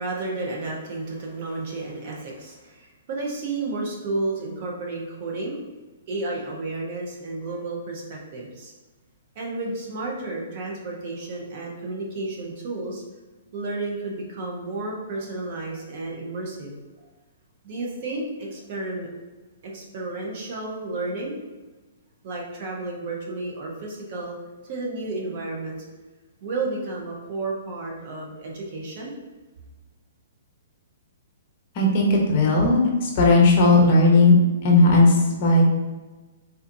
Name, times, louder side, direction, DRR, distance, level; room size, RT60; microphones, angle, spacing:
voice 1, 0.0-5.6 6.1-8.7 9.3-13.0 13.5-16.7 17.6-19.1 19.6-21.4 22.2-24.4 24.7-25.8 26.4-29.1, right 2 dB, 50° right, -1 dB, 1.0 m, -32 dB
voice 2, 31.7-34.3 34.6-35.6, left 2 dB, 45° left, -1 dB, 0.9 m, -16 dB
4.0 x 2.7 x 2.7 m, 1.2 s
hypercardioid pair, 130°, 0 cm